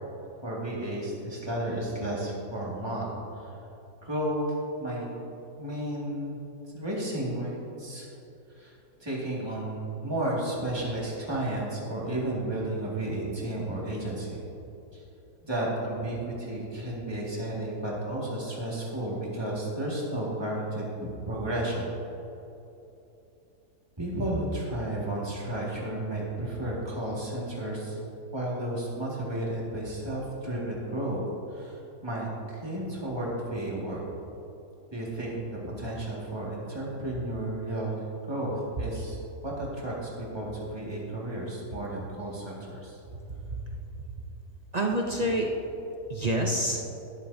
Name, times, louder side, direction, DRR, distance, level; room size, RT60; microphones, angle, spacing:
voice 1, 0.4-3.6 4.0-4.4 4.8-5.1 5.6-6.4 6.7-8.1 8.5-8.8 9.0-14.4 14.9-15.0 15.4-20.9 21.3-21.9 24.0-28.0 28.3-31.2 31.5-34.0 34.9-38.0 38.3-39.2 39.4-43.0, right 1 dB, 15° right, -5 dB, 2.0 m, -32 dB
voice 2, 43.1-43.6 44.7-45.5 46.1-46.8, right 1 dB, 45° right, 0 dB, 0.5 m, -28 dB
12.0 x 11.0 x 2.7 m, 2.9 s
omnidirectional pair, 1.7 m